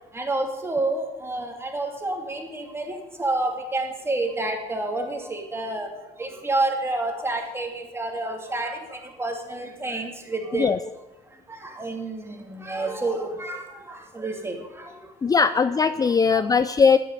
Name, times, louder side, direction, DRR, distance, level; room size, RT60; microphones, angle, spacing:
voice 1, 0.1-5.9 6.2-10.7 11.5-15.1 16.3-16.5, right 2 dB, 15° right, 2 dB, 2.8 m, -29 dB
voice 2, 15.2-17.0, left 5 dB, 20° left, 13 dB, 0.5 m, -19 dB
11.0 x 9.1 x 9.6 m, 1.1 s
cardioid pair, 110°, 17 cm